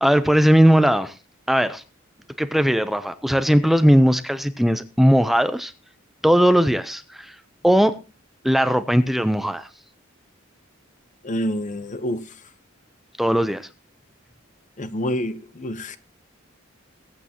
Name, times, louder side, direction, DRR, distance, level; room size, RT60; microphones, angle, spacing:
voice 1, 0.0-1.1 1.5-1.8 2.4-5.7 6.2-7.4 7.6-8.0 8.4-9.7 13.2-13.7, equal, ahead, 0.6 m, -18 dB
voice 2, 11.2-12.2 14.8-16.0, equal, 40° left, 1.0 m, -27 dB
22.0 x 8.7 x 2.9 m
head